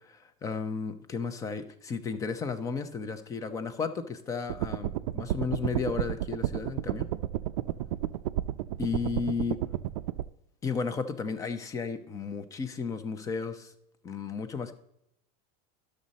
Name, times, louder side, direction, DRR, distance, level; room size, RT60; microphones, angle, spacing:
voice 1, 0.0-7.0 8.8-9.6 10.6-13.7 14.0-14.7, left 5 dB, 15° left, 11 dB, 0.7 m, -33 dB
sound 1, 4.5-10.2, right 13 dB, 75° right, 0.5 m, -31 dB
11.5 x 6.5 x 4.1 m, 0.79 s
supercardioid pair, 160°, 19 cm